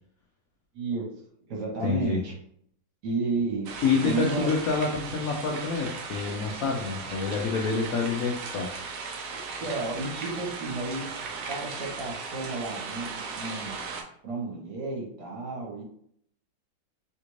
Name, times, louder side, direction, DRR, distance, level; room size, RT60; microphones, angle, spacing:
voice 1, 0.7-1.0 1.5-2.3 3.0-3.7 4.0-4.5 9.6-11.0 11.5-13.7 14.2-15.8, right 3 dB, 60° right, -3 dB, 1.6 m, -32 dB
voice 2, 1.8-2.2 3.8-8.7, left 5 dB, 75° left, 0 dB, 0.8 m, -27 dB
sound 1, 3.7-14.0, right 4 dB, 80° right, 0.7 m, -37 dB
3.4 x 2.5 x 3.0 m, 0.66 s
omnidirectional pair, 2.1 m